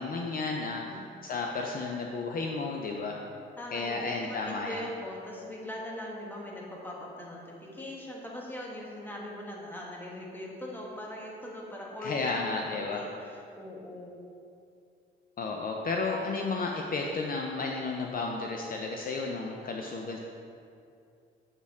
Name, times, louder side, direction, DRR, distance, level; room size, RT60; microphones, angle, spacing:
voice 1, 0.0-3.2 3.7-4.9 12.0-13.0 15.4-20.2, left 3 dB, 45° left, 1 dB, 0.5 m, -33 dB
voice 2, 3.6-14.1, left 1 dB, 10° left, -3 dB, 1.2 m, -41 dB
6.9 x 4.3 x 3.5 m, 2.5 s
cardioid pair, 90°, 20 cm